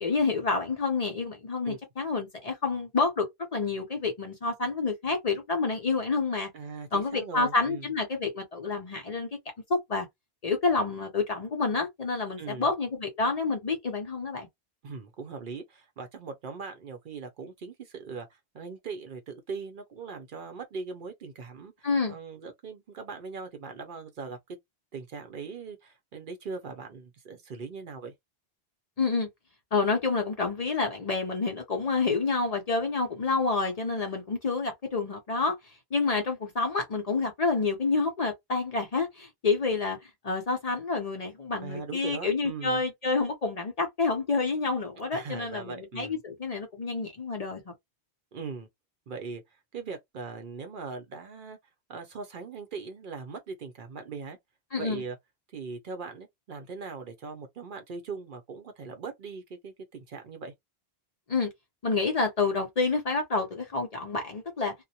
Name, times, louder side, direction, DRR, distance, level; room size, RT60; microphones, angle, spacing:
voice 1, 0.0-6.5 6.9-9.3 9.7-10.1 10.4-14.5 21.8-22.2 29.0-29.3 29.7-35.6 35.9-47.7 54.7-55.0 61.3-61.5 61.8-64.7, left 4 dB, 45° left, 0.6 m, -28 dB
voice 2, 6.5-7.9 12.4-12.7 14.8-24.4 24.9-28.1 41.6-42.8 45.1-46.2 48.3-48.7 49.1-49.4 49.7-51.6 51.9-54.4 54.8-55.2 55.5-60.5, right 4 dB, 60° right, 0.7 m, -40 dB
2.3 x 2.0 x 2.7 m
omnidirectional pair, 1.1 m